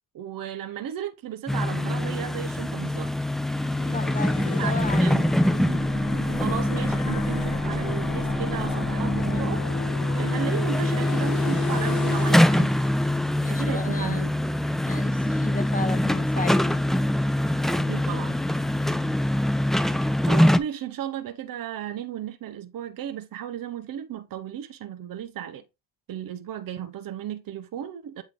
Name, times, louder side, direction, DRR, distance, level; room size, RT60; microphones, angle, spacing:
voice 1, 0.1-3.1 4.4-5.2 6.2-9.6 10.1-12.8 13.5-14.3 17.7-18.4 20.3-25.6 26.1-28.2, right 10 dB, 60° right, 1.0 m, -35 dB
sound 1, 1.5-20.6, left 1 dB, ahead, 0.4 m, -24 dB
sound 2, 3.3-13.6, left 5 dB, 50° left, 1.7 m, -36 dB
voice 2, 3.8-5.2 13.4-14.3 14.9-16.9, left 4 dB, 20° left, 0.9 m, -34 dB
8.2 x 3.5 x 3.8 m
cardioid pair, 90°, 39 cm